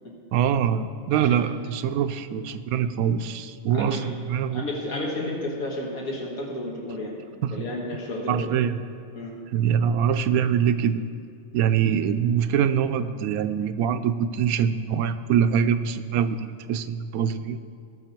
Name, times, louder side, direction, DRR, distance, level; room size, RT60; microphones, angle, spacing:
voice 1, 0.3-4.6 7.4-7.5 8.3-8.8 9.5-11.0 11.5-17.6, right 8 dB, 85° right, 11 dB, 1.0 m, -24 dB
voice 2, 3.7-4.1 4.5-7.2 7.5-8.5 9.1-9.3 11.8-12.0, left 1 dB, 80° left, -2 dB, 2.4 m, -32 dB
18.0 x 6.5 x 4.5 m, 2.3 s
omnidirectional pair, 1.5 m